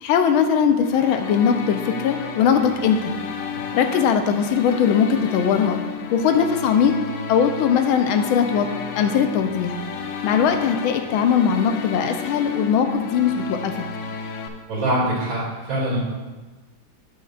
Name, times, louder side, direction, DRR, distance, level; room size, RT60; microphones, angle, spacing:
voice 1, 0.0-3.1 3.7-5.8 6.1-7.0 7.3-8.7 9.0-9.8 10.2-13.7, left 7 dB, 90° left, 7 dB, 1.5 m, -20 dB
sound 1, 0.8-14.5, left 6 dB, 75° left, 1.2 m, -32 dB
voice 2, 14.7-16.0, right 1 dB, 75° right, -7 dB, 3.4 m, -24 dB
9.1 x 7.9 x 2.5 m, 1.2 s
omnidirectional pair, 2.2 m